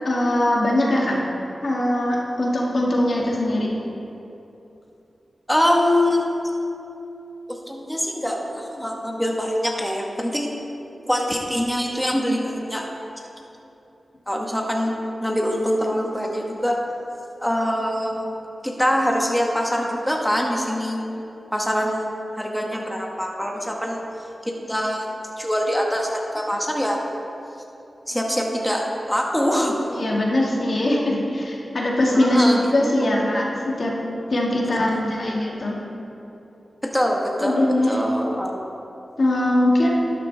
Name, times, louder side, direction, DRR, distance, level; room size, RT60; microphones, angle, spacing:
voice 1, 0.0-1.2 1.6-3.7 30.0-34.0 34.3-35.8 37.4-38.0 39.2-39.9, left 1 dB, 65° left, -3 dB, 2.1 m, -21 dB
voice 2, 5.5-6.2 7.5-10.5 11.1-12.9 14.3-14.9 15.2-16.8 17.4-18.3 18.6-21.1 21.5-24.0 24.4-25.1 25.4-27.0 28.1-29.9 32.1-32.7 34.6-35.0 36.8-38.6, equal, 5° left, 0 dB, 1.5 m, -24 dB
12.0 x 9.1 x 3.5 m, 2.9 s
cardioid pair, 45°, 0 cm